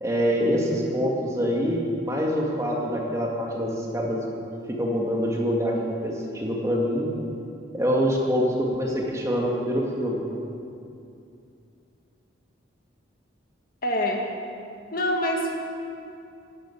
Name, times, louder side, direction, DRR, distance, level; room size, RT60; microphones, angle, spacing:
voice 1, 0.0-4.2 4.7-7.1 7.7-10.2, equal, 15° right, -2 dB, 2.0 m, -25 dB
voice 2, 13.8-14.3 14.9-15.5, left 1 dB, 45° left, 1 dB, 1.8 m, -25 dB
12.5 x 11.5 x 8.7 m, 2.6 s
head